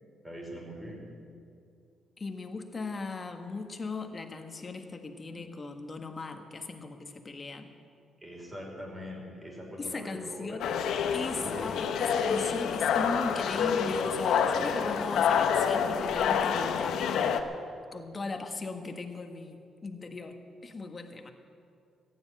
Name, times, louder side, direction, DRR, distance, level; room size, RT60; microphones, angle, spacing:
voice 1, 0.2-1.0 8.2-10.6 11.3-12.0, equal, 15° right, -2 dB, 5.1 m, -42 dB
voice 2, 2.2-7.7 9.8-10.7 11.1-17.3 17.9-21.3, left 3 dB, 30° left, 5 dB, 1.6 m, -38 dB
sound 1, 10.6-17.4, left 7 dB, 75° left, 0.9 m, -28 dB
15.0 x 10.0 x 9.0 m, 2.4 s
cardioid pair, 90°, 0 cm